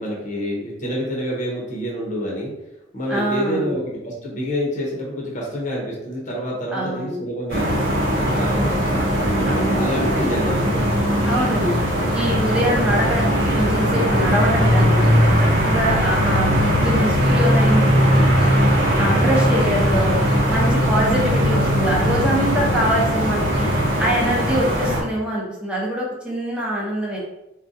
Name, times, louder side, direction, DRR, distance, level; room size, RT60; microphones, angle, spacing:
voice 1, 0.0-2.5 2.9-9.1 9.7-10.7, equal, 40° left, -3 dB, 0.8 m, -27 dB
voice 2, 3.1-3.8 6.7-7.2 9.4-9.8 11.2-11.8 12.1-15.0 15.4-18.5 19.0-20.2 20.5-23.7 24.0-27.2, equal, 5° right, -4 dB, 0.7 m, -24 dB
sound 1, 7.5-25.0, equal, 60° right, 1.0 m, -19 dB
3.7 x 2.2 x 2.6 m, 0.93 s
head